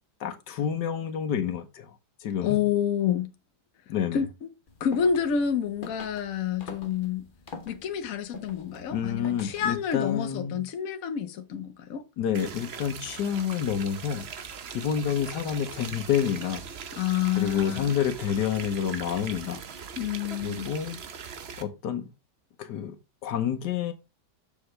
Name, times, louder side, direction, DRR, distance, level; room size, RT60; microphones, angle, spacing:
voice 1, 0.2-1.9 2.2-2.6 3.9-4.2 8.9-10.6 12.2-14.3 14.7-16.6 17.4-19.6 20.4-21.0 21.6-22.1 22.6-23.9, left 8 dB, 75° left, 1.5 m, -28 dB
voice 2, 2.4-3.3 4.1-4.5 4.8-7.3 7.7-12.0 17.0-17.9 20.0-20.7, left 8 dB, 55° left, 1.2 m, -28 dB
sound 1, 4.7-9.9, left 3 dB, 35° left, 1.1 m, -45 dB
sound 2, 12.3-21.6, right 6 dB, 50° right, 0.8 m, -40 dB
7.1 x 7.0 x 3.2 m
omnidirectional pair, 1.8 m